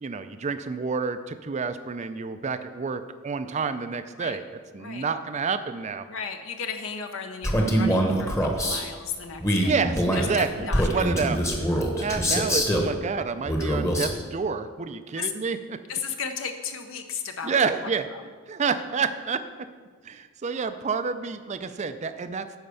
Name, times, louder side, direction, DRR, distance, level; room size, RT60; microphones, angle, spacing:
voice 1, 0.0-6.1 9.7-15.8 17.4-18.1 18.5-19.4 20.0-22.5, right 5 dB, 35° right, 11 dB, 0.4 m, -29 dB
voice 2, 6.1-9.8 10.1-11.1 12.1-12.2 15.2-15.3 15.9-17.5, left 6 dB, 65° left, 6 dB, 0.7 m, -34 dB
Male speech man speaking, 7.4-8.8 9.4-12.9 13.4-14.2, equal, 15° left, 1.0 m, -24 dB
10.5 x 4.4 x 6.8 m, 1.5 s
head